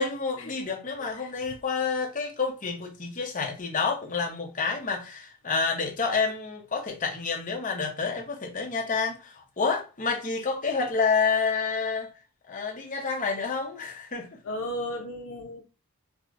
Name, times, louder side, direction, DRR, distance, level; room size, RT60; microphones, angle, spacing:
voice 1, 0.0-12.1 12.5-14.3, left 5 dB, 35° left, 0.7 m, -29 dB
voice 2, 14.4-15.6, left 1 dB, 65° left, 0.4 m, -34 dB
4.8 x 2.1 x 2.4 m
head